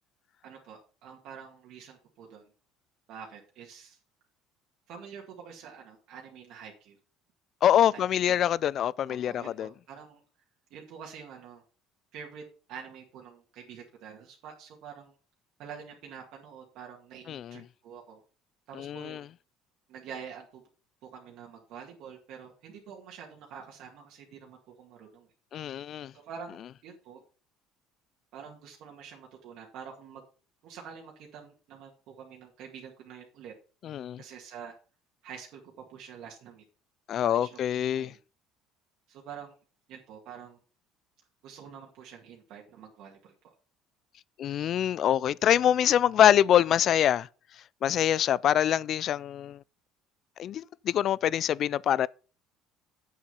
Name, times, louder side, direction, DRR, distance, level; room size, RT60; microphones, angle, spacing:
voice 1, 0.4-2.5 3.1-4.0 4.9-7.0 7.9-8.0 9.1-10.2 10.7-11.6 12.1-12.4 12.7-15.1 15.6-18.2 18.7-19.3 19.9-20.6 21.0-25.3 26.1-27.2 28.3-30.2 30.6-33.5 34.2-34.8 35.2-36.6 37.2-38.2 39.1-39.5 39.9-40.6 41.4-43.3, right 7 dB, 65° right, 2.0 m, -46 dB
voice 2, 7.6-9.7 17.3-17.6 18.7-19.3 25.5-26.1 33.8-34.2 37.1-38.1 44.4-47.3 47.8-49.6 50.4-52.1, left 10 dB, 45° left, 0.3 m, -25 dB
8.1 x 6.5 x 5.6 m
cardioid pair, 130°, 0 cm